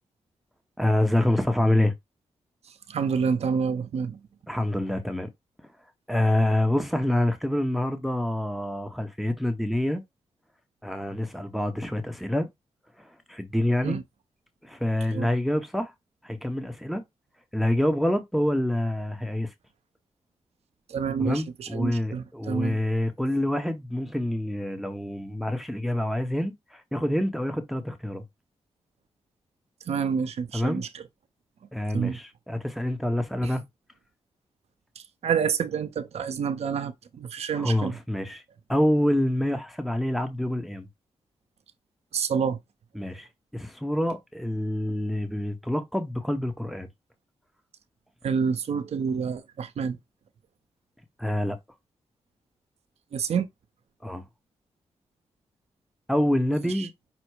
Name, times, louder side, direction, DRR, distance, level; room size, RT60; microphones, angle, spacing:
voice 1, 0.8-1.9 4.5-5.3 6.1-10.0 10.8-12.5 13.0-14.0 14.6-15.9 16.2-17.0 17.5-19.5 21.2-28.2 30.5-30.8 31.7-33.6 37.6-38.4 38.7-40.9 42.9-43.3 43.5-46.9 51.2-51.6 54.0-54.2 56.1-56.9, left 1 dB, ahead, 0.8 m, -26 dB
voice 2, 2.9-4.2 13.8-14.0 15.1-15.3 20.9-22.8 29.9-31.0 31.9-32.2 35.2-38.0 42.1-42.6 48.2-50.0 53.1-53.5 56.7-56.9, right 6 dB, 75° right, 0.7 m, -28 dB
5.7 x 2.0 x 4.6 m
cardioid pair, 75°, 11 cm